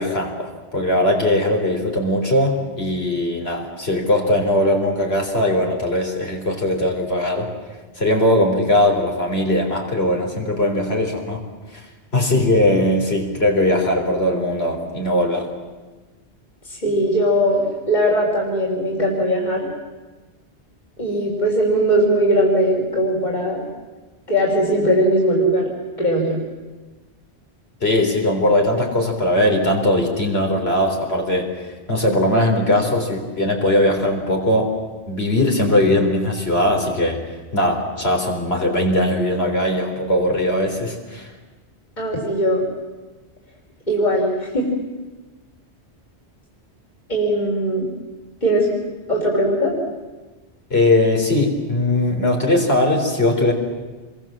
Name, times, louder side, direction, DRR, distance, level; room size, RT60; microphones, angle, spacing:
voice 1, 0.0-7.5 8.0-11.4 11.7-11.8 12.1-15.5 27.8-31.5 31.9-34.7 35.1-37.2 37.5-41.3 50.7-53.5, left 1 dB, 65° left, 1 dB, 4.1 m, -19 dB
voice 2, 16.7-19.7 21.0-23.7 24.3-25.7 26.0-26.4 42.0-42.6 43.9-44.7 47.1-47.9 48.4-48.8 49.1-49.8, equal, 40° left, -2 dB, 4.1 m, -19 dB
27.5 x 22.0 x 7.5 m, 1.3 s
omnidirectional pair, 1.1 m